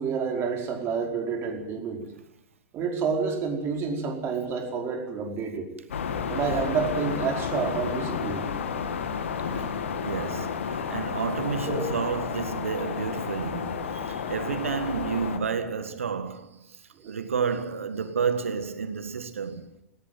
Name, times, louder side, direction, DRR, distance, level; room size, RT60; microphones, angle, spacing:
voice 1, 0.0-2.1 2.7-5.7 6.3-8.5 11.7-11.9 17.0-17.2, right 5 dB, 35° right, 5.1 m, -29 dB
sound 1, 5.9-15.4, left 6 dB, 65° left, 2.5 m, -31 dB
voice 2, 10.0-19.7, right 6 dB, 75° right, 1.6 m, -31 dB
19.0 x 18.0 x 9.4 m
figure-of-eight pair, 95°, 7 cm